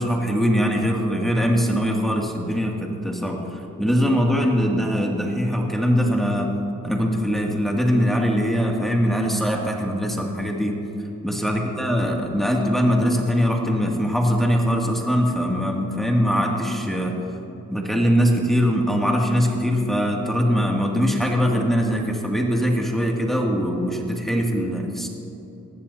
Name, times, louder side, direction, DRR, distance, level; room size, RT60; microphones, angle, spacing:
voice 1, 0.0-3.4 3.8-6.6 6.8-10.8 11.2-17.1 17.7-25.1, equal, ahead, -1 dB, 2.5 m, -22 dB
19.0 x 14.0 x 2.8 m, 2.9 s
supercardioid pair, 55°, 32 cm